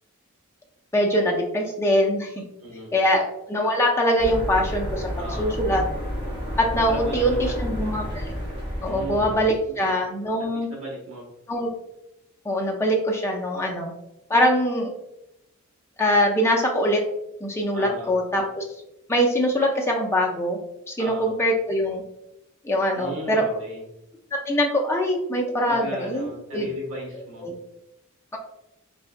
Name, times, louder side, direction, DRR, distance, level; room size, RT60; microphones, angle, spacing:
voice 1, 0.9-2.4 2.9-5.1 5.4-5.8 6.6-8.3 8.8-10.7 11.5-11.7 12.5-13.9 14.3-14.9 16.0-17.0 17.4-18.6 19.1-20.6 20.9-22.0 22.6-23.5 24.3-26.7 27.4-27.5 28.3-28.4, equal, 10° left, 0 dB, 0.4 m, -23 dB
voice 2, 2.6-2.9 5.2-5.6 6.9-7.7 8.9-9.4 9.7-9.8 10.4-11.3 17.7-18.1 21.0-21.3 22.9-23.8 25.6-27.5, right 1 dB, 65° right, -1 dB, 1.1 m, -36 dB
sound 1, 4.2-9.4, equal, 25° right, 0.8 m, -30 dB
3.4 x 2.8 x 2.4 m, 0.86 s
head